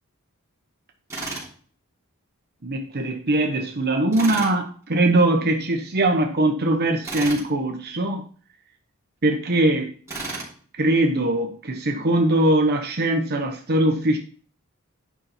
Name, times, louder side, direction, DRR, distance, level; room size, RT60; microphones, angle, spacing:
Tools, 1.1-1.5 4.1-4.5 7.0-7.5 10.1-10.5, right 2 dB, 15° right, 3.1 m, -32 dB
voice 1, 2.6-8.2 9.2-9.9 10.8-14.2, right 1 dB, 45° right, 2 dB, 1.0 m, -21 dB
9.7 x 5.5 x 4.4 m, 0.42 s
head